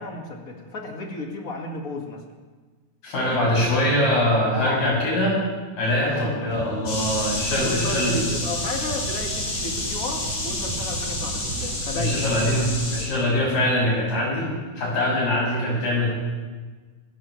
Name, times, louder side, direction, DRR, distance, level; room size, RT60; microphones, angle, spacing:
voice 1, 0.0-2.2 3.2-3.8 4.5-4.9 6.0-6.5 7.5-12.2, left 2 dB, 30° left, 1 dB, 1.9 m, -33 dB
voice 2, 3.0-5.4 5.8-8.2 11.9-14.5 14.8-16.1, left 1 dB, 85° left, -6 dB, 8.7 m, -23 dB
sound 1, 6.5-11.8, right 6 dB, 70° right, 1.8 m, -37 dB
sound 2, 6.9-13.0, left 2 dB, 65° left, 5.7 m, -29 dB
25.5 x 16.0 x 3.2 m, 1.4 s
omnidirectional pair, 3.6 m